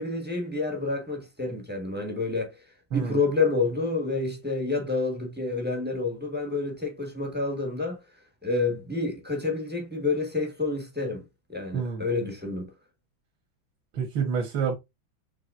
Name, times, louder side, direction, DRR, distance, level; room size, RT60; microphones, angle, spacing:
voice 1, 0.0-2.5 2.9-8.0 8.4-11.2 11.5-12.7, left 3 dB, 5° right, 1.1 m, -28 dB
voice 2, 11.7-12.0 13.9-14.8, right 6 dB, 80° right, 2.1 m, -28 dB
6.1 x 3.4 x 2.5 m
omnidirectional pair, 2.2 m